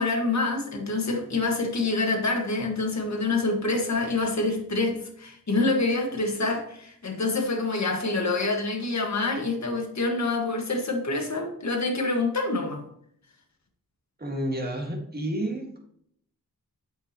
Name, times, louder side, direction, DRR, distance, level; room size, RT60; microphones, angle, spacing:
voice 1, 0.0-12.8, left 3 dB, 50° left, 3 dB, 1.7 m, -26 dB
voice 2, 14.2-15.8, right 1 dB, 25° right, 0 dB, 1.9 m, -30 dB
8.2 x 6.8 x 3.0 m, 0.67 s
wide cardioid pair, 80°, 35 cm